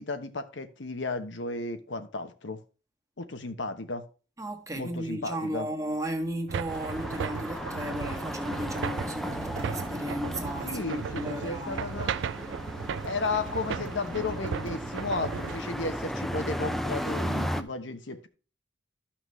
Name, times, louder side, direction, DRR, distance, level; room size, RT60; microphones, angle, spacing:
voice 1, 0.0-2.6 3.2-4.0 4.7-5.7 10.6-12.1 13.0-18.3, left 3 dB, 85° left, 1.0 m, -34 dB
voice 2, 4.4-11.9, right 1 dB, 20° right, 1.2 m, -35 dB
sound 1, 6.5-15.6, right 6 dB, 80° right, 0.4 m, -36 dB
sound 2, 6.7-17.6, equal, ahead, 0.5 m, -35 dB
12.5 x 5.9 x 3.2 m
head